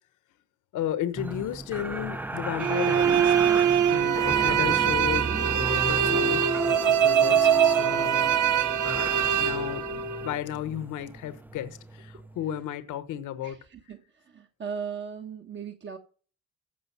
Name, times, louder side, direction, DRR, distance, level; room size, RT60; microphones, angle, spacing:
voice 1, 0.7-3.3 3.9-8.3 9.4-13.6, left 11 dB, 85° left, 1.0 m, -34 dB
sound 1, 1.2-12.5 12.9-13.0, right 2 dB, 5° right, 0.4 m, -34 dB
sound 2, 2.6-10.3, right 9 dB, 80° right, 0.8 m, -23 dB
voice 2, 3.8-4.1 13.4-16.0, right 6 dB, 40° right, 1.2 m, -38 dB
14.0 x 5.3 x 5.5 m
cardioid pair, 90°, 30 cm